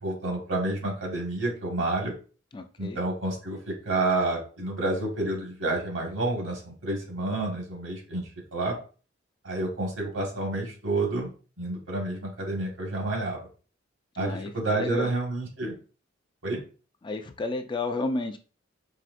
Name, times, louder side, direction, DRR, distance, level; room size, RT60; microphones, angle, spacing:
voice 1, 0.0-2.1 2.8-8.2 8.5-8.7 9.4-11.3 11.6-13.5 14.2-15.7 16.4-16.6, right 2 dB, 80° right, 0 dB, 1.7 m, -29 dB
voice 2, 2.5-3.0 14.1-15.1 17.0-18.4, left 3 dB, 25° left, 6 dB, 0.3 m, -32 dB
4.7 x 3.2 x 2.5 m, 0.37 s
head